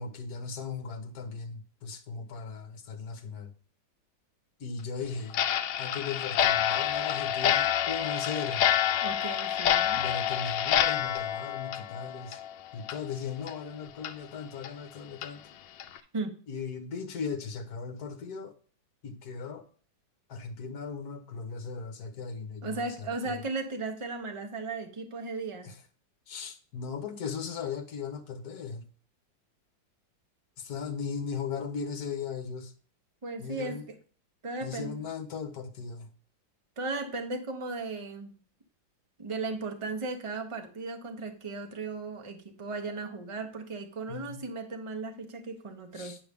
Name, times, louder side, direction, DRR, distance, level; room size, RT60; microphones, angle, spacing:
voice 1, 0.0-3.5 4.6-5.5 5.8-8.6 9.9-12.4 12.7-15.4 16.5-18.5 19.0-19.7 20.3-23.4 25.6-25.8 26.3-28.9 30.6-32.7 33.4-33.9 34.6-36.1 44.1-44.4 45.9-46.2, left 5 dB, 55° left, 1.5 m, -37 dB
Clock, 5.3-12.5 12.8-13.0 13.5-13.6 14.0-14.1 14.6-14.7 15.2-15.3 15.8-16.0, left 10 dB, 75° left, 1.3 m, -28 dB
voice 2, 9.0-10.0 16.1-16.4 22.6-25.7 33.2-34.0 34.4-35.0 36.8-38.3 39.2-46.2, right 3 dB, 25° right, 0.7 m, -36 dB
9.8 x 5.5 x 3.5 m
omnidirectional pair, 2.1 m